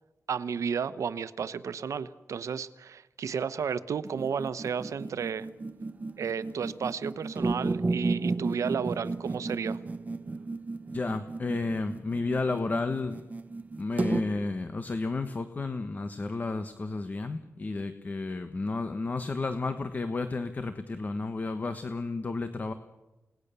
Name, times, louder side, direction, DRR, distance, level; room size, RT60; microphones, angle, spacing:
voice 1, 0.3-5.5 6.2-9.8, right 6 dB, 80° right, 14 dB, 1.0 m, -32 dB
sound 1, 4.0-14.2, right 3 dB, 30° right, 1.2 m, -33 dB
voice 2, 10.9-13.2 13.8-22.7, left 3 dB, 30° left, 9 dB, 1.3 m, -32 dB
30.0 x 19.0 x 6.9 m, 1.0 s
wide cardioid pair, 150°, 5 cm